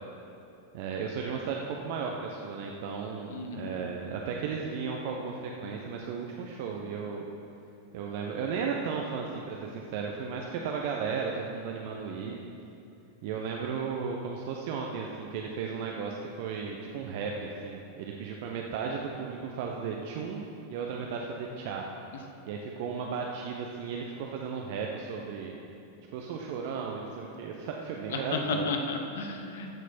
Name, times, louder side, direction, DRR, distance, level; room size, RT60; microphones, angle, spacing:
voice 1, 0.7-7.3 7.9-12.4 13.2-21.8 22.5-25.6 26.1-28.7, right 5 dB, 50° right, 0 dB, 0.7 m, -35 dB
voice 2, 3.3-3.7 28.1-29.7, left 4 dB, 60° left, 4 dB, 1.0 m, -33 dB
14.5 x 6.3 x 4.3 m, 2.7 s
figure-of-eight pair, 90°, 0 cm